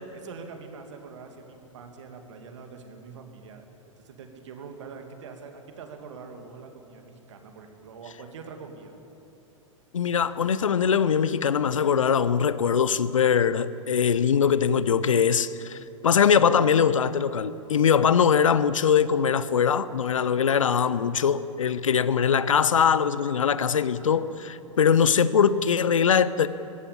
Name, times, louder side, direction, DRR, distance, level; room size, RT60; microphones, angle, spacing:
voice 1, 0.1-3.6 4.0-8.9 24.0-24.3, right 5 dB, 65° right, 4 dB, 2.7 m, -44 dB
voice 2, 9.9-26.5, left 7 dB, 75° left, 16 dB, 0.8 m, -22 dB
19.5 x 15.5 x 8.8 m, 3.0 s
figure-of-eight pair, 100°, 17 cm